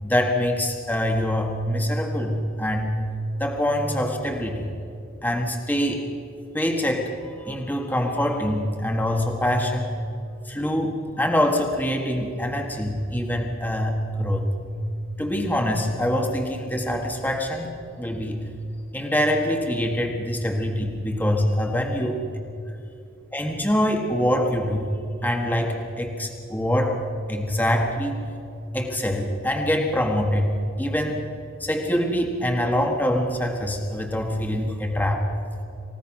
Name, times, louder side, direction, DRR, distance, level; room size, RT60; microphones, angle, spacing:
voice 1, 0.0-3.1 3.4-4.7 5.2-6.1 6.5-9.9 10.4-14.5 15.2-17.7 18.0-18.4 18.9-22.2 23.3-24.9 25.2-27.0 27.3-28.2 28.7-31.2 31.6-35.3, equal, 10° left, 2 dB, 1.7 m, -24 dB
28.5 x 16.5 x 6.1 m, 2.7 s
head